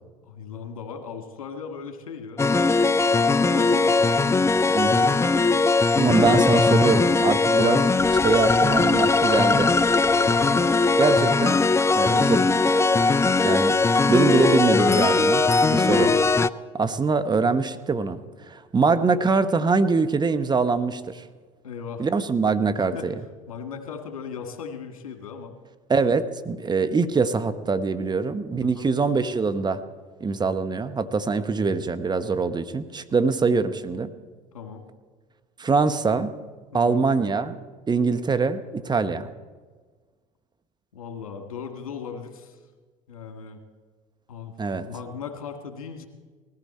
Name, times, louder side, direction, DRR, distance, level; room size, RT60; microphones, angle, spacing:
voice 1, 0.3-2.5 3.2-4.5 10.0-10.6 15.9-16.2 21.6-22.1 22.8-23.1 23.5-25.6 28.6-28.9 33.1-33.3 34.5-34.8 36.7-37.0 40.9-42.6 43.1-43.6 44.3-46.1, left 6 dB, 90° left, 5 dB, 1.8 m, -38 dB
sound 1, 2.4-16.5, left 3 dB, 15° left, 0.5 m, -20 dB
voice 2, 4.7-5.1 6.0-7.9 8.2-9.7 11.0-11.7 11.9-12.8 13.4-13.8 14.1-15.4 15.7-16.1 16.7-18.2 18.5-21.2 22.0-23.1 25.9-29.8 30.2-34.1 35.6-36.3 36.7-37.6 37.9-39.3 44.6-44.8, right 4 dB, 25° right, 11 dB, 1.0 m, -23 dB
19.5 x 14.5 x 4.3 m, 1.4 s
hypercardioid pair, 75°, 18 cm